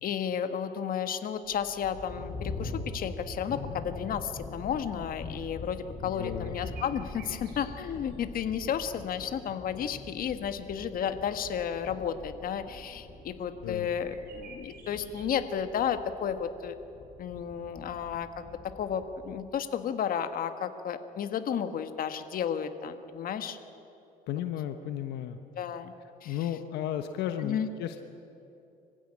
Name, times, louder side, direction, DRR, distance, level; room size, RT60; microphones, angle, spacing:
voice 1, 0.0-16.8 17.2-23.6 25.5-25.9 26.2-26.5 27.4-27.7, left 8 dB, 55° left, 9 dB, 1.6 m, -33 dB
sound 1, 1.5-19.5, left 3 dB, 30° left, 4.9 m, -43 dB
voice 2, 6.0-6.5 13.6-13.9 24.3-25.4 26.2-28.0, left 10 dB, 80° left, 8 dB, 1.2 m, -34 dB
sound 2, 6.1-8.2 8.4-8.5 13.8-15.4, right 6 dB, 70° right, 5.7 m, -52 dB
25.0 x 16.0 x 10.0 m, 2.8 s
cardioid pair, 110°, 17 cm